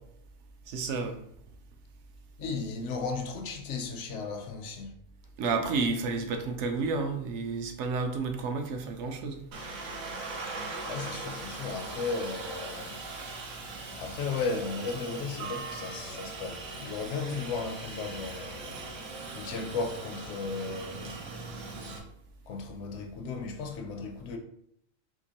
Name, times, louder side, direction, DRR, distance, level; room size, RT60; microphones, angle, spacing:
voice 1, 0.7-1.2 5.4-9.4, right 4 dB, 65° right, 0.8 m, -31 dB
voice 2, 2.4-5.0 10.9-13.0 14.0-18.8 19.3-21.2 22.5-24.4, left 4 dB, 65° left, 0.9 m, -35 dB
Aircraft, 9.5-22.0, right 3 dB, 85° right, 1.2 m, -40 dB
3.7 x 2.8 x 2.8 m
omnidirectional pair, 1.4 m